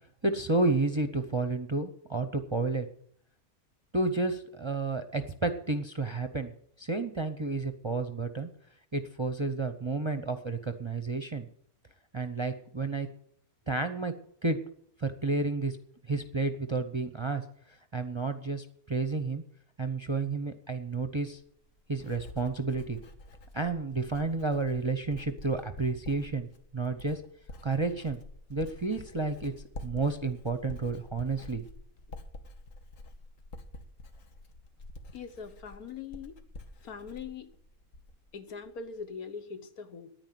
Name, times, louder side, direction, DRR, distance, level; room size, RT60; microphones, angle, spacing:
voice 1, 0.2-2.9 3.9-6.5 6.8-8.5 8.9-11.5 12.1-13.1 13.7-14.1 14.4-14.6 15.0-15.8 16.1-17.4 17.9-19.4 19.8-21.4 21.9-23.0 23.5-26.5 26.7-27.2 27.6-28.2 28.5-29.5 29.8-31.6, right 3 dB, 25° right, 7 dB, 0.6 m, -31 dB
Writing, 21.3-38.3 38.6-39.0, left 1 dB, 65° left, 1.6 m, -48 dB
voice 2, 35.1-36.4 36.8-37.5 38.3-40.1, left 6 dB, 85° left, 9 dB, 1.7 m, -42 dB
9.7 x 9.7 x 9.3 m, 0.68 s
omnidirectional pair, 1.5 m